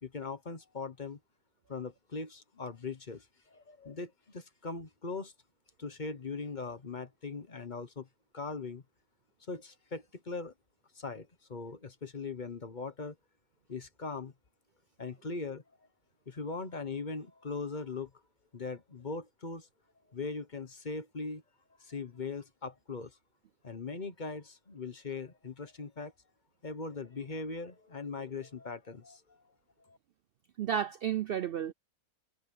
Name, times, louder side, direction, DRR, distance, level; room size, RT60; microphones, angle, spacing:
voice 1, 0.0-1.2 1.7-5.3 5.8-8.1 8.3-8.8 9.5-10.5 10.9-13.1 13.7-14.3 15.0-15.6 16.3-18.1 18.5-19.7 20.1-21.4 21.8-23.2 23.6-26.1 26.6-29.4 29.9-30.0, left 4 dB, 35° left, 1.2 m, -40 dB
voice 2, 30.6-31.7, right 9 dB, 85° right, 0.5 m, -32 dB
omnidirectional pair, 1.6 m